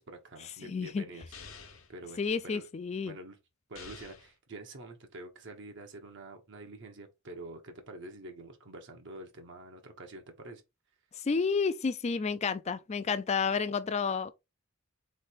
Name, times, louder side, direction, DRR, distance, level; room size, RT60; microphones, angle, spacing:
voice 1, 0.0-1.3 1.9-2.7 3.1-3.4 3.7-10.6, right 2 dB, 60° right, 0.9 m, -47 dB
voice 2, 0.6-1.0 2.2-3.1 11.2-14.3, left 5 dB, 30° left, 0.4 m, -30 dB
sound 1, 1.3-1.9 3.8-4.4, left 5 dB, 75° left, 1.0 m, -48 dB
3.7 x 3.2 x 4.2 m
head